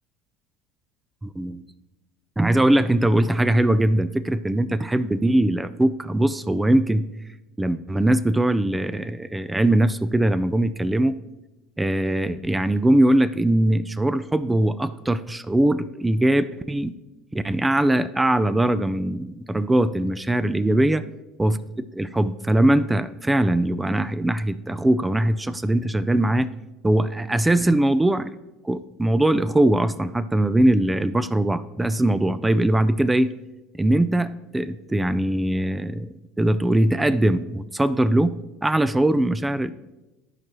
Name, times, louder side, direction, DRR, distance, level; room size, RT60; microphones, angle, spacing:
voice 1, 1.2-1.6 2.4-7.0 7.6-11.1 11.8-16.9 17.3-21.0 21.4-21.6 21.9-26.5 26.8-28.3 28.6-33.3 33.7-38.3 38.6-39.7, right 1 dB, 10° right, 13 dB, 0.4 m, -21 dB
13.0 x 4.7 x 3.0 m, 1.0 s
supercardioid pair, 90°, 0 cm